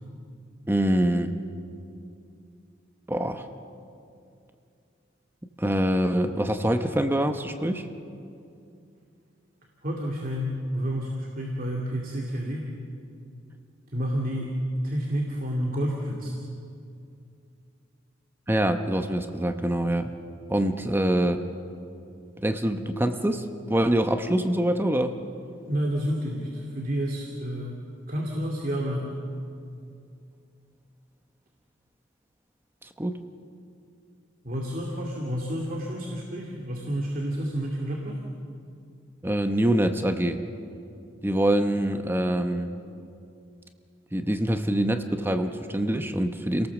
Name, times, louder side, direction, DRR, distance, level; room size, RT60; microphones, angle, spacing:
voice 1, 0.7-1.3 3.1-3.5 5.6-7.9 18.5-20.1 20.5-21.4 22.4-25.1 32.8-33.2 39.2-40.4 41.2-42.8 44.1-46.7, right 1 dB, 10° right, 7 dB, 0.9 m, -25 dB
voice 2, 9.8-12.7 13.9-14.6 14.8-16.4 25.6-27.8 28.1-29.1 34.4-38.2, equal, 45° right, -1 dB, 2.4 m, -30 dB
29.0 x 18.5 x 7.2 m, 2.5 s
head